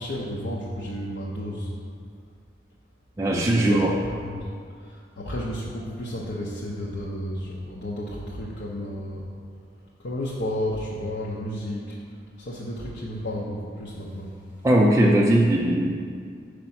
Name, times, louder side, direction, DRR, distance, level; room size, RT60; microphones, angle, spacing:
voice 1, 0.0-1.7 3.4-4.5 4.8-9.3 10.0-12.0 12.4-14.4, left 1 dB, 75° left, -5 dB, 0.6 m, -32 dB
voice 2, 3.2-4.0 14.6-16.1, right 1 dB, 15° right, -2 dB, 0.3 m, -19 dB
5.0 x 4.3 x 5.6 m, 2.2 s
head